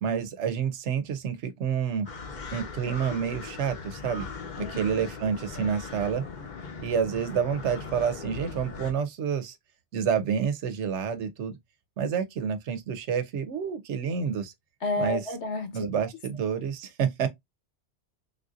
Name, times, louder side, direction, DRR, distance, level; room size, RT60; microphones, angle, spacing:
voice 1, 0.0-2.1 2.5-4.3 4.8-6.2 6.8-9.6 9.9-11.6 12.0-14.5 15.0-15.2 15.7-17.3, right 7 dB, 90° right, 0.9 m, -28 dB
sound 1, 2.1-8.9, left 4 dB, 50° left, 0.7 m, -39 dB
voice 2, 14.8-15.9, left 2 dB, 75° left, 1.2 m, -31 dB
3.6 x 2.6 x 2.4 m
omnidirectional pair, 1.2 m